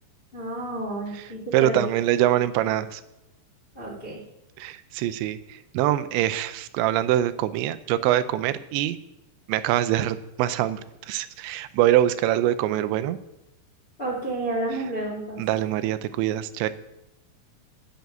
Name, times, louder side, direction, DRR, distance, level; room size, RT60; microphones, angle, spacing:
voice 1, 0.3-1.8 3.7-4.2 14.0-15.4, right 2 dB, 20° left, -3 dB, 1.4 m, -30 dB
voice 2, 1.5-3.0 4.6-9.0 9.5-10.8 11.1-13.2 15.4-16.7, right 13 dB, 85° right, 12 dB, 3.0 m, -24 dB
10.5 x 6.9 x 9.2 m, 0.91 s
omnidirectional pair, 5.1 m